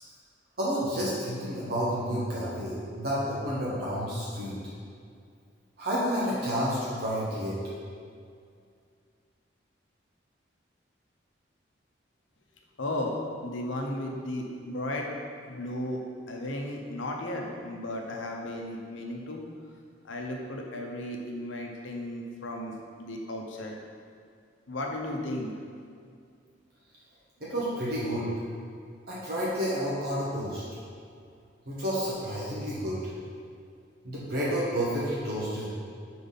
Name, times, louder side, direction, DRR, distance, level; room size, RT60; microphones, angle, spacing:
voice 1, 0.6-4.6 5.8-7.6 27.4-28.3 29.1-30.6 31.7-33.0 34.0-35.7, equal, 55° right, -8 dB, 1.0 m, -30 dB
voice 2, 12.8-13.1 13.4-15.1 15.5-16.0 16.3-19.4 20.1-22.7 23.0-23.7 24.7-25.5, left 1 dB, 85° left, 1 dB, 0.8 m, -34 dB
4.6 x 4.0 x 5.3 m, 2.3 s
head